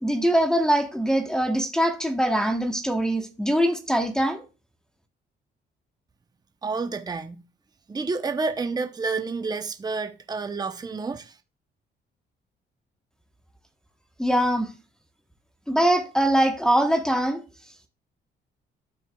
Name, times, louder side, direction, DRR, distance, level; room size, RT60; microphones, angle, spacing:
voice 1, 0.0-4.4 14.2-14.7 15.7-17.4, right 1 dB, 5° left, 1.0 m, -22 dB
voice 2, 6.6-7.4 7.9-11.3, right 4 dB, 20° right, 0.7 m, -29 dB
13.5 x 4.5 x 2.3 m
cardioid pair, 90°, 20 cm